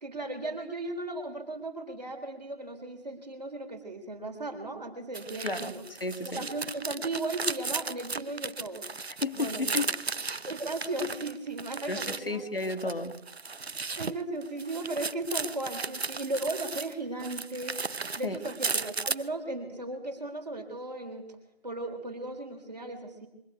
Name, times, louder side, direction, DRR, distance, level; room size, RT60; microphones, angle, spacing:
voice 1, 0.0-5.8 6.2-8.9 9.3-9.9 10.5-12.4 14.0-17.8 18.2-21.2 21.6-23.3, right 2 dB, 40° right, 6 dB, 3.5 m, -36 dB
sound 1, 5.1-12.2 12.6-16.9 17.2-19.2, right 4 dB, 75° right, 0.9 m, -35 dB
voice 2, 5.4-6.5 9.2-10.0 11.9-13.2 18.2-18.4, left 3 dB, 60° left, 8 dB, 2.2 m, -33 dB
23.0 x 15.5 x 8.3 m, 0.85 s
figure-of-eight pair, 170°, 32 cm